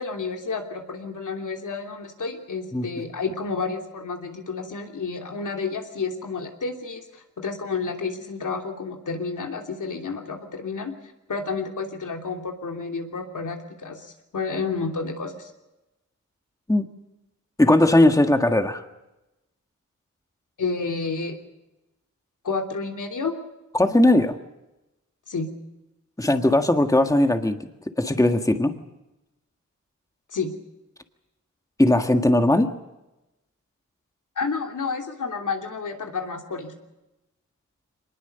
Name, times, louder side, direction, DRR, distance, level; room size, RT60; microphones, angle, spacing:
voice 1, 0.0-10.9 11.3-15.5 20.6-21.4 22.4-23.3 25.3-25.5 30.3-30.5 34.4-36.7, left 4 dB, 80° left, 3 dB, 3.1 m, -30 dB
voice 2, 17.6-18.8 23.7-24.4 26.2-27.7 28.0-28.8 31.8-32.7, left 1 dB, 10° left, 6 dB, 1.7 m, -19 dB
24.0 x 20.5 x 6.9 m, 0.97 s
wide cardioid pair, 80°, 30 cm